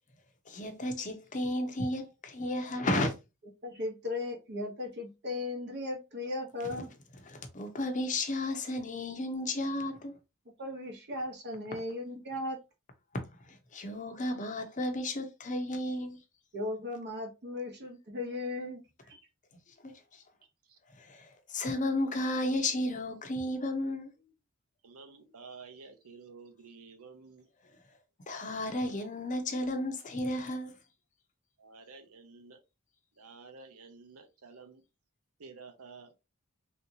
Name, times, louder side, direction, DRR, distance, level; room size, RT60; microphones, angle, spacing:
voice 1, 0.5-3.1 7.3-10.1 13.5-16.2 19.8-20.2 21.0-24.1 28.3-30.8, left 1 dB, 35° left, 0.7 m, -33 dB
voice 2, 3.6-6.9 10.6-12.6 16.5-19.2, left 2 dB, 50° right, 0.9 m, -37 dB
voice 3, 20.4-20.8 24.8-27.5 31.6-32.6 33.2-34.8 35.4-36.1, right 4 dB, 80° right, 0.8 m, -51 dB
3.3 x 2.8 x 2.7 m
head